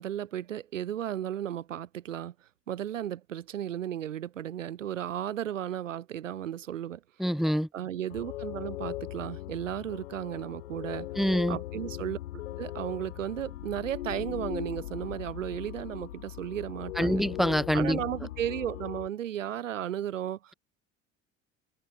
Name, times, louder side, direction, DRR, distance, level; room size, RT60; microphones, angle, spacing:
voice 1, 0.0-2.3 2.7-7.0 7.7-11.1 11.5-12.2 12.6-17.2 17.7-20.5, right 11 dB, 90° right, 2.1 m, -34 dB
voice 2, 7.2-7.7 11.2-11.6 17.0-18.0, equal, ahead, 0.4 m, -25 dB
sound 1, 8.1-19.1, left 15 dB, 85° left, 1.5 m, -39 dB
hypercardioid pair, 70°, 37 cm